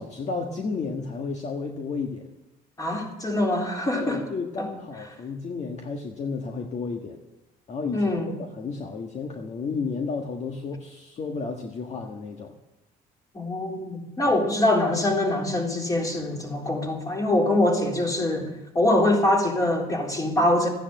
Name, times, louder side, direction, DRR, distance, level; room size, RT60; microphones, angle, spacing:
voice 1, 0.0-2.3 3.9-7.2 7.7-8.1 8.4-12.5 14.3-14.4, left 4 dB, 40° left, 2 dB, 1.6 m, -32 dB
voice 2, 2.8-4.2 4.6-4.7 7.9-8.3 13.3-20.7, left 1 dB, 20° left, 0 dB, 3.8 m, -24 dB
14.5 x 10.0 x 7.7 m, 0.99 s
cardioid pair, 110°, 17 cm